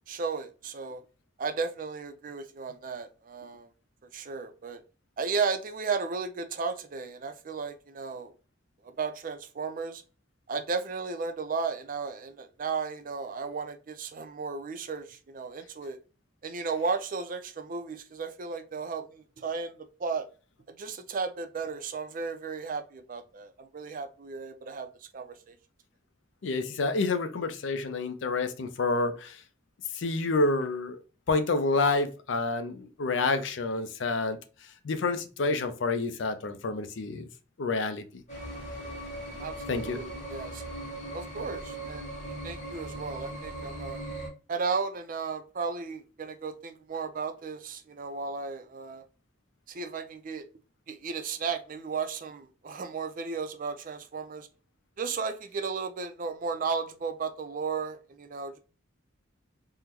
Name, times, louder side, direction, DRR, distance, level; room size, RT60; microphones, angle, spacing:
voice 1, 0.1-1.0 1.4-3.7 4.1-4.8 5.2-8.3 9.0-10.0 10.5-16.0 16.4-20.3 20.8-24.9 25.1-25.5 39.4-40.6 41.1-44.0 44.5-49.0 49.7-50.4 50.9-54.5 55.0-58.6, right 5 dB, 45° right, 0.4 m, -34 dB
voice 2, 26.4-29.4 29.9-31.0 31.3-34.4 34.8-37.3 37.6-38.0 39.7-40.0, left 3 dB, 70° left, 0.5 m, -28 dB
sound 1, 38.3-44.3, right 1 dB, 40° left, 1.6 m, -39 dB
3.7 x 2.1 x 2.8 m
head